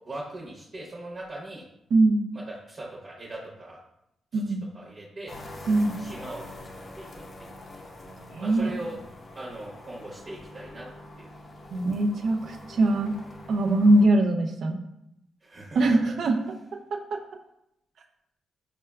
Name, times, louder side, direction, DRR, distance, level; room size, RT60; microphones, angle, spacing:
voice 1, 0.1-1.6 2.3-3.8 4.3-5.3 6.0-6.4 7.0-7.1 7.4-7.5 8.4-9.0 9.3-10.9 11.2-11.3 15.4-15.8, right 1 dB, 40° right, -5 dB, 0.8 m, -40 dB
voice 2, 1.9-2.3 4.3-4.6 5.7-6.0 8.3-8.7 11.7-13.1 13.5-14.8 15.8-16.5 16.9-17.2, right 2 dB, 65° right, 4 dB, 0.4 m, -22 dB
sound 1, 5.3-14.1, left 1 dB, 45° left, 0.5 m, -44 dB
4.4 x 2.2 x 2.2 m, 0.82 s
cardioid pair, 75°, 0 cm